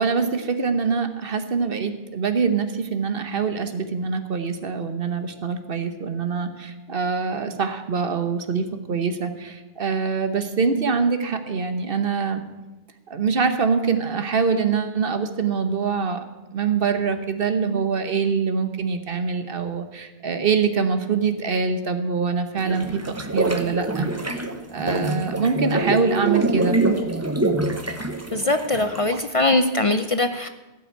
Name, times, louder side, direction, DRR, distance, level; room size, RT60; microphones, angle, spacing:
voice 1, 0.0-12.4 13.1-16.2 16.5-24.4 24.7-26.8 29.0-29.2, right 5 dB, 65° right, 8 dB, 1.2 m, -24 dB
sound 1, 22.6-29.3, right 2 dB, 15° right, 0.9 m, -25 dB
voice 2, 28.3-30.5, left 2 dB, 40° left, 9 dB, 0.6 m, -21 dB
16.5 x 6.3 x 8.7 m, 1.1 s
omnidirectional pair, 1.0 m